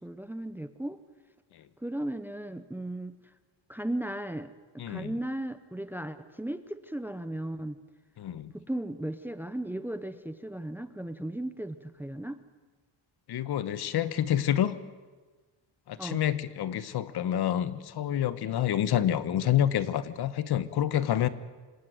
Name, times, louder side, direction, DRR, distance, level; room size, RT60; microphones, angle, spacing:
voice 1, 0.0-1.0 1.8-3.3 3.7-7.8 8.5-12.4 16.0-16.2, right 1 dB, 5° right, 12 dB, 0.7 m, -36 dB
voice 2, 4.8-5.1 8.2-8.5 13.3-14.8 15.9-21.3, left 11 dB, 55° left, 15 dB, 1.3 m, -28 dB
26.0 x 18.5 x 9.4 m, 1.3 s
cardioid pair, 155°, 46 cm